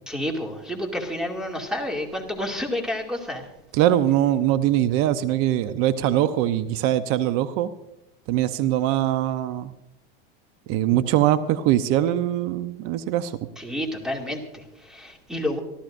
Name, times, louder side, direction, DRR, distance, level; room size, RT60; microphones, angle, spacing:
voice 1, 0.1-3.5 13.6-15.6, left 1 dB, ahead, 1 dB, 2.5 m, -30 dB
voice 2, 3.7-7.7 8.3-9.7 10.7-13.4, right 12 dB, 50° right, 11 dB, 0.8 m, -22 dB
25.5 x 13.5 x 2.6 m, 0.89 s
supercardioid pair, 135°, 29 cm